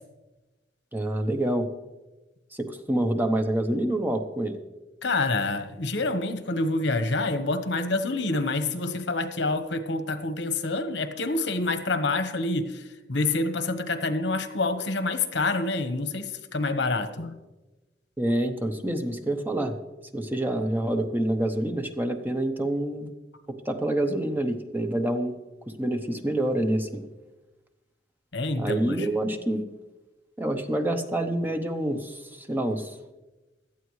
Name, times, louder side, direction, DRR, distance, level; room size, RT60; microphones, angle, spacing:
voice 1, 0.9-1.7 2.5-4.6 18.2-19.7 20.1-23.1 23.5-25.3 25.8-27.0 28.6-29.6 30.4-32.9, right 1 dB, 10° right, 5 dB, 0.8 m, -27 dB
voice 2, 5.0-17.3 28.3-29.1, left 2 dB, 80° left, 9 dB, 1.1 m, -27 dB
17.5 x 12.5 x 3.2 m, 1.1 s
head